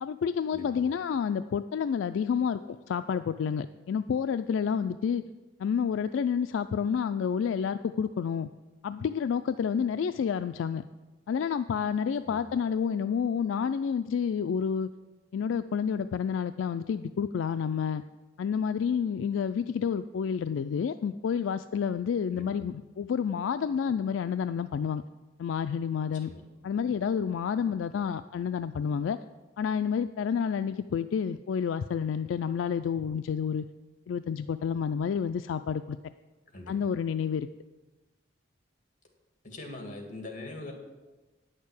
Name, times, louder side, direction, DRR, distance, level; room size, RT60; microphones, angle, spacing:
voice 1, 0.0-5.2 5.6-8.5 8.8-10.8 11.3-14.9 15.3-18.0 18.4-25.0 25.4-26.3 26.6-29.2 29.6-33.6 34.1-36.0 36.7-37.5, left 7 dB, 75° left, 11 dB, 0.3 m, -29 dB
voice 2, 0.5-0.9 12.2-12.5 22.3-22.6 26.1-26.4 36.5-36.8 39.4-40.7, left 2 dB, 45° left, 2 dB, 2.3 m, -42 dB
9.4 x 6.6 x 8.2 m, 1.2 s
head